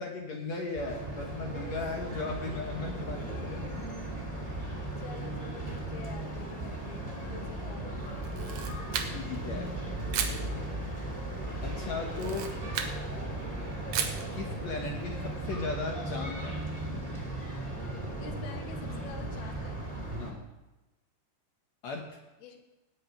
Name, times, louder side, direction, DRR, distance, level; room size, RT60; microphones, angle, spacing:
voice 1, 0.0-3.8 8.9-9.7 11.6-12.5 14.3-16.6 20.2-20.4 21.8-22.1, left 4 dB, 60° left, 1 dB, 1.9 m, -37 dB
sound 1, 0.8-20.3, right 1 dB, 10° right, 2.1 m, -36 dB
voice 2, 5.0-8.3 18.2-20.2 22.4-22.6, left 5 dB, 80° left, 5 dB, 3.2 m, -48 dB
Camera, 8.2-9.4 10.1-10.4 12.1-13.0 13.9-14.3, right 8 dB, 70° right, 1.7 m, -33 dB
18.5 x 8.5 x 4.9 m, 1.1 s
omnidirectional pair, 4.5 m